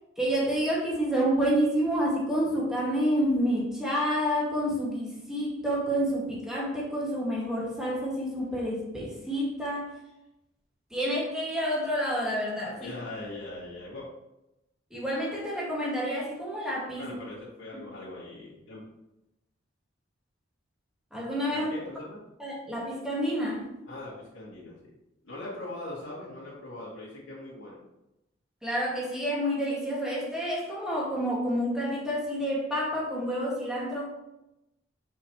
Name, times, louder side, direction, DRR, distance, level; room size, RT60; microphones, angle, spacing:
voice 1, 0.2-9.9 10.9-12.9 14.9-17.1 21.1-21.7 22.4-23.7 28.6-34.1, equal, 5° right, -5 dB, 1.9 m, -29 dB
voice 2, 12.7-14.1 17.0-18.8 21.5-22.2 23.9-24.9 25.2-27.8, left 2 dB, 85° left, -9 dB, 2.1 m, -41 dB
6.2 x 5.7 x 3.1 m, 0.90 s
head